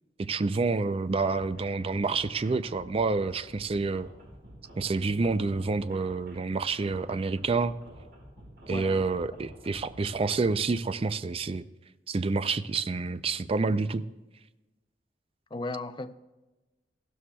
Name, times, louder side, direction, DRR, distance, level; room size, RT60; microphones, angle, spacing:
voice 1, 0.2-4.1 4.8-7.8 8.7-11.6 12.1-14.0, right 4 dB, 35° right, 0.4 m, -28 dB
sound 1, 1.0-10.3, equal, 65° right, 4.5 m, -50 dB
voice 2, 8.7-9.0 15.5-16.1, left 2 dB, 25° left, 0.5 m, -35 dB
16.0 x 12.5 x 2.3 m
head